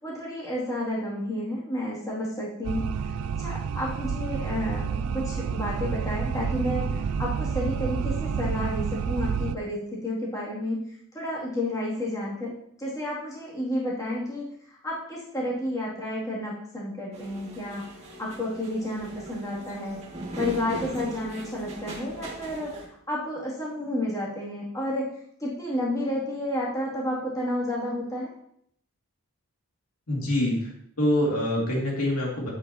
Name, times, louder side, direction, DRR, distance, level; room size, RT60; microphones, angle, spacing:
voice 1, 0.0-2.9 3.4-17.8 18.2-20.0 20.4-22.7 23.1-25.1 25.4-28.3, left 1 dB, 15° left, -7 dB, 2.8 m, -31 dB
sound 1, 2.6-9.5, right 6 dB, 80° right, 0.4 m, -29 dB
sound 2, 17.1-22.9, right 1 dB, 30° right, 2.1 m, -39 dB
voice 2, 30.1-30.7 31.0-32.5, left 1 dB, 80° left, -3 dB, 2.6 m, -25 dB
10.0 x 8.3 x 3.0 m, 0.71 s
head